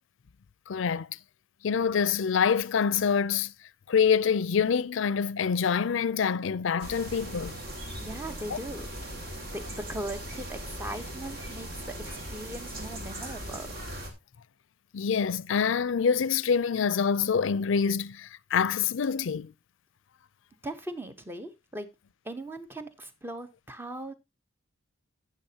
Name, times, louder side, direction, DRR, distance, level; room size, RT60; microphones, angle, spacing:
voice 1, 0.7-1.1 1.6-3.5 3.9-7.5 8.5-8.6 14.9-19.5, left 6 dB, 75° left, 0.4 m, -26 dB
sound 1, 6.8-14.1, right 1 dB, 50° right, 2.3 m, -39 dB
voice 2, 8.0-8.9 9.5-13.7 20.6-21.9 22.2-24.1, right 1 dB, 10° right, 0.9 m, -39 dB
12.0 x 8.5 x 2.8 m
head